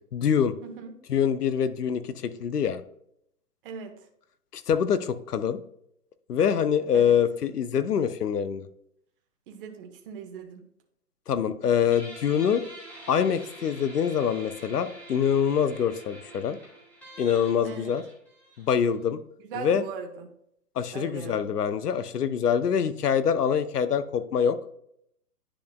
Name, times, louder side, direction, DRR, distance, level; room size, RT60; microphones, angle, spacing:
voice 1, 0.1-0.5 1.1-2.8 4.5-5.6 6.3-8.7 11.3-12.6 13.1-16.6 17.2-18.0 18.6-19.2 19.6-19.8 20.8-24.6, left 8 dB, 70° left, 12 dB, 0.8 m, -25 dB
voice 2, 3.6-4.0 6.9-7.1 9.5-10.6 17.6-17.9 19.4-20.3 20.9-21.5, right 6 dB, 35° right, 4 dB, 1.1 m, -39 dB
Guitar, 11.9-19.1, right 1 dB, 5° left, 1.7 m, -46 dB
10.0 x 5.2 x 2.3 m, 0.72 s
hypercardioid pair, 135°, 48 cm